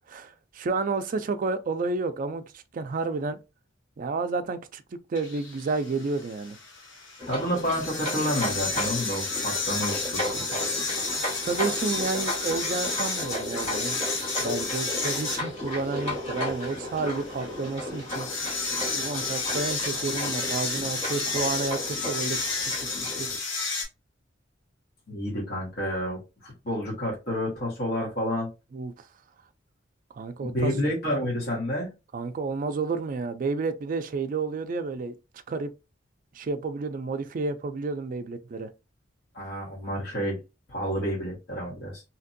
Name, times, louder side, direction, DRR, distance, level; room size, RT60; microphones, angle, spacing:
voice 1, 0.1-3.4 4.0-4.8 5.1-6.6 11.4-14.0 14.4-18.3 18.9-22.9 23.2-23.3 28.7-29.1 30.1-30.7 32.1-35.2 35.5-35.7 36.3-38.7, right 4 dB, 45° right, 0.4 m, -31 dB
sound 1, 5.1-23.8, left 3 dB, 75° left, 1.0 m, -32 dB
sound 2, 7.2-23.4, left 1 dB, 35° left, 1.3 m, -34 dB
voice 2, 7.3-10.6 25.1-28.5 30.4-31.9 39.3-40.4 40.7-42.0, equal, 55° left, 1.3 m, -29 dB
2.8 x 2.5 x 2.5 m
head